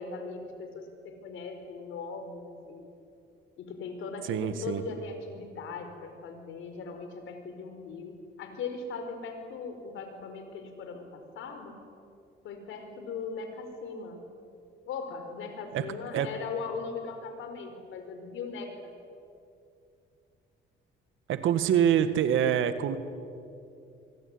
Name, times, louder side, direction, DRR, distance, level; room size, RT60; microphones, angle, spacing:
voice 1, 0.0-2.9 3.6-11.8 12.4-14.2 14.9-18.9, left 4 dB, 80° left, 7 dB, 4.8 m, -39 dB
voice 2, 4.2-4.8 15.7-15.9 16.1-16.3 21.3-23.0, right 9 dB, 80° right, 11 dB, 1.9 m, -25 dB
24.5 x 23.5 x 9.7 m, 2.6 s
cardioid pair, 90°, 20 cm